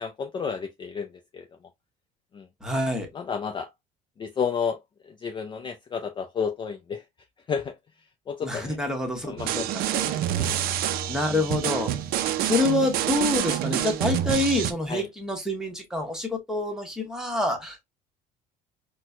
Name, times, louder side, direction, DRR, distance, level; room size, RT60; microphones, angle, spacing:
voice 1, 0.0-1.5 2.3-2.5 3.1-3.7 4.2-7.0 7.5-7.8 8.3-8.8 9.2-9.7 9.9-10.6 11.3-11.4 14.9-15.1, left 6 dB, 25° left, 0.4 m, -32 dB
voice 2, 2.6-3.1 8.4-9.8 11.1-11.9 12.4-17.9, left 2 dB, 5° right, 1.2 m, -27 dB
sound 1, 9.4-14.7, right 11 dB, 60° right, 0.5 m, -27 dB
4.3 x 2.2 x 2.4 m
cardioid pair, 120°, 17 cm